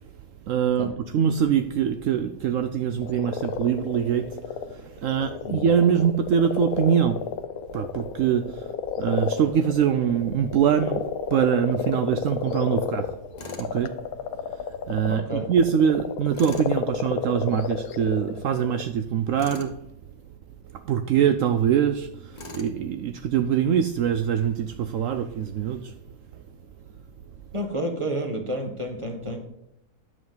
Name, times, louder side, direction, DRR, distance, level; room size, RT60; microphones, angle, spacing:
voice 1, 0.5-7.3 7.7-8.7 9.0-13.1 13.6-14.0 14.9-19.8 20.7-26.0, right 8 dB, 70° right, 0.9 m, -24 dB
sound 1, 3.0-18.8, left 7 dB, 90° left, 1.2 m, -31 dB
Tools, 13.4-13.7 16.3-16.7 19.4-19.7 22.3-22.8, left 2 dB, 30° left, 1.4 m, -39 dB
voice 2, 15.1-15.5 27.5-29.4, right 1 dB, 20° right, 1.5 m, -30 dB
11.0 x 7.6 x 3.9 m
omnidirectional pair, 1.5 m